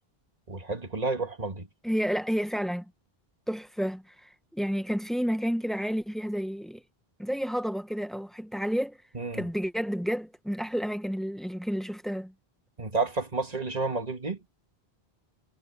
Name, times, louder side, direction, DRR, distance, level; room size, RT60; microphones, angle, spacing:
voice 1, 0.5-1.7 9.1-9.4 12.8-14.4, right 3 dB, 40° right, 2.2 m, -30 dB
voice 2, 1.8-2.9 3.5-6.8 7.2-9.0 9.3-12.3, equal, ahead, 0.8 m, -30 dB
omnidirectional pair, 1.0 m